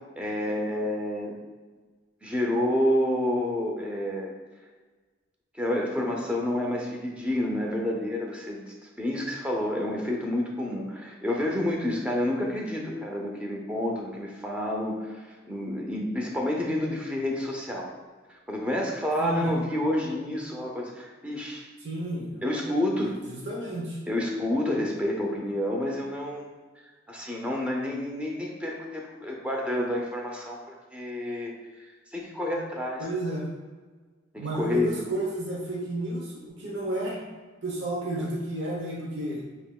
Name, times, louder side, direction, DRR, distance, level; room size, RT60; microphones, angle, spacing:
voice 1, 0.2-1.4 2.2-4.3 5.6-8.6 9.0-15.2 15.5-17.9 18.5-21.7 22.4-23.1 24.1-26.5 27.1-31.5 32.1-33.1 34.3-35.0 38.2-38.3, left 1 dB, 5° right, -1 dB, 0.6 m, -29 dB
voice 2, 19.2-19.5 21.8-22.4 23.0-24.0 33.0-33.5 34.4-37.2 37.6-39.4, right 1 dB, 60° right, -4 dB, 1.0 m, -31 dB
7.7 x 2.9 x 2.3 m, 1.4 s
head